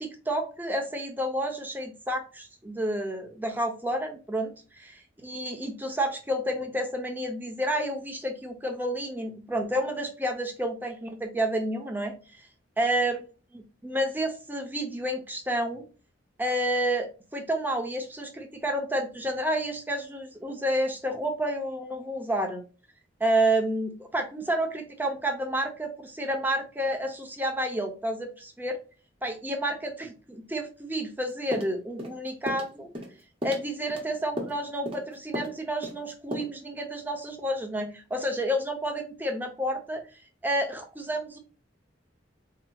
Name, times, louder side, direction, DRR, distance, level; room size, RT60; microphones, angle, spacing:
voice 1, 0.0-12.5 12.8-13.2 13.5-15.8 16.4-22.6 23.2-28.8 29.2-32.9 33.4-41.4, right 1 dB, 10° right, 3 dB, 0.7 m, -30 dB
sound 1, 31.5-32.2 32.5-32.7 32.9-33.2 33.4-34.0 34.4-34.6 34.9-35.1 35.3-35.6 35.8-36.0 36.3-36.4, equal, 30° right, 1.0 m, -34 dB
4.6 x 2.9 x 2.3 m, 0.35 s
head